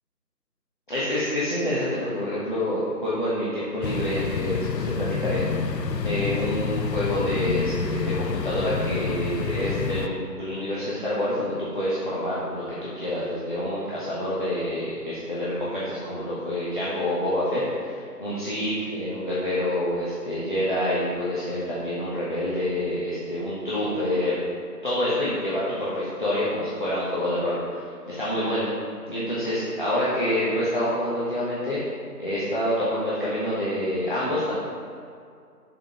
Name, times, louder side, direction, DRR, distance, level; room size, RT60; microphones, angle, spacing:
voice 1, 0.9-5.7 6.0-24.4 24.8-28.7 29.1-31.8 32.2-34.5, left 1 dB, 30° left, -9 dB, 1.0 m, -27 dB
sound 1, 3.8-10.1, left 5 dB, 90° left, 0.6 m, -28 dB
6.5 x 5.0 x 4.7 m, 2.3 s
figure-of-eight pair, 160°, 48 cm